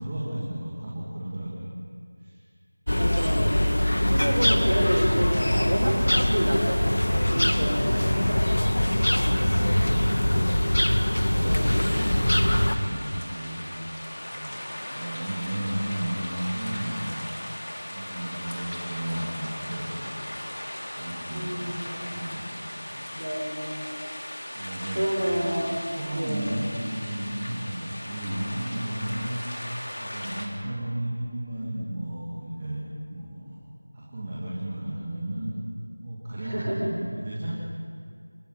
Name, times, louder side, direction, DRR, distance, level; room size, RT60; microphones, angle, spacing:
voice 1, 0.0-1.7 2.2-2.4 5.7-6.1 7.4-7.8 8.9-10.7 11.2-13.7 14.3-14.6 14.9-17.3 17.9-20.1 21.0-21.8 22.1-22.5 22.9-23.1 24.5-25.4 26.0-29.7 30.0-32.8 33.1-33.6 33.9-35.6 36.0-37.5, right 1 dB, 15° right, -7 dB, 2.0 m, -34 dB
sound 1, 2.9-12.8, left 1 dB, 65° left, 1.7 m, -23 dB
voice 2, 2.9-8.7 11.3-12.0 21.3-22.0 23.2-23.9 24.9-25.8 26.1-26.6 36.4-36.9, equal, 80° right, 0 dB, 6.0 m, -29 dB
sound 2, 11.6-30.5, left 1 dB, 50° left, 3.6 m, -38 dB
27.5 x 16.0 x 9.1 m, 2.2 s
figure-of-eight pair, 180°, 0 cm